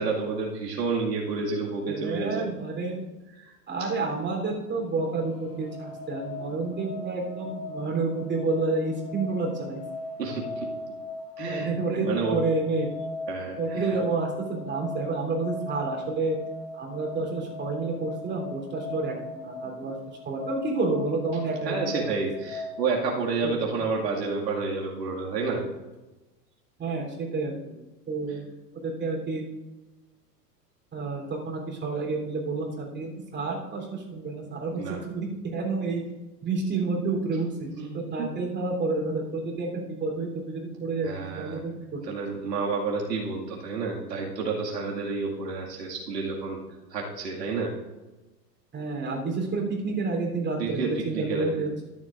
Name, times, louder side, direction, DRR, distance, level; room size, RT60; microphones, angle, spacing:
voice 1, 0.0-2.5 3.4-3.5 3.8-3.9 10.2-10.7 11.4-11.7 12.0-12.4 13.3-13.9 21.6-25.6 34.8-35.0 37.8-37.9 38.2-38.3 41.0-41.6 42.0-46.6 46.9-47.7 50.6-51.6, right 4 dB, 80° right, -2 dB, 2.3 m, -30 dB
voice 2, 1.9-3.0 3.7-9.8 11.5-12.9 13.6-16.4 16.7-19.9 20.3-21.8 23.4-23.7 24.1-24.2 26.8-27.5 28.1-28.5 28.8-29.4 30.9-36.0 36.4-41.1 41.4-42.0 48.7-51.8, right 3 dB, 20° right, -1 dB, 3.5 m, -29 dB
sound 1, 4.7-22.9, left 2 dB, 30° left, 1.5 m, -39 dB
13.5 x 11.0 x 2.6 m, 1.1 s
hypercardioid pair, 100°, 49 cm